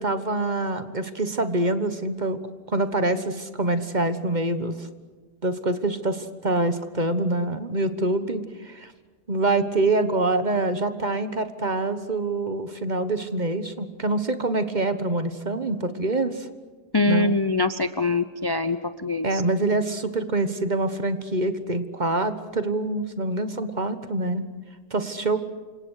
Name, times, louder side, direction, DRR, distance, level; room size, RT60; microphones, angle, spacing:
voice 1, 0.0-2.4 2.7-4.9 5.4-8.9 9.3-16.5 17.1-17.3 19.2-24.4 24.9-25.4, right 2 dB, 30° right, 10 dB, 1.4 m, -25 dB
voice 2, 16.9-19.4, left 3 dB, 25° left, 10 dB, 0.5 m, -24 dB
28.5 x 26.0 x 6.6 m, 1.4 s
omnidirectional pair, 1.6 m